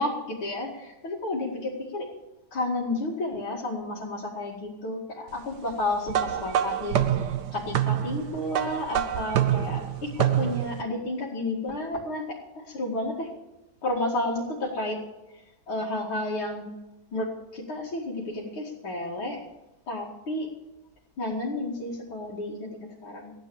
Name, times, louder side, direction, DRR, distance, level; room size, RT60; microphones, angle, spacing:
voice 1, 0.0-2.0 2.5-13.1 13.8-15.0 15.3-16.7 17.1-19.4 19.9-20.5 21.2-23.3, left 2 dB, 75° left, -6 dB, 3.2 m, -31 dB
sound 1, 6.1-10.8, right 11 dB, 60° right, 1.3 m, -26 dB
15.5 x 9.8 x 7.2 m, 1.0 s
omnidirectional pair, 2.3 m